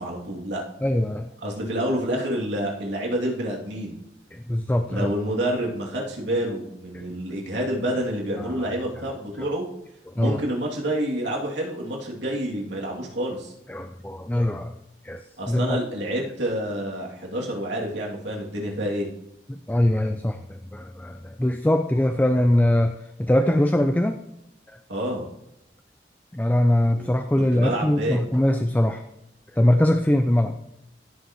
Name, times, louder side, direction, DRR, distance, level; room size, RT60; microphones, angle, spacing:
voice 1, 0.0-0.6 1.4-4.0 4.9-9.7 10.2-13.5 15.4-19.1 24.9-25.2 26.9-27.1 27.3-28.2, right 1 dB, 85° right, -2 dB, 2.7 m, -28 dB
voice 2, 0.8-1.3 4.3-5.1 6.9-7.0 8.4-8.5 10.2-10.4 13.7-14.7 15.0-15.8 19.5-24.2 26.3-29.0 29.5-30.6, left 1 dB, 10° left, 7 dB, 0.4 m, -22 dB
16.0 x 6.8 x 3.1 m, 0.84 s
head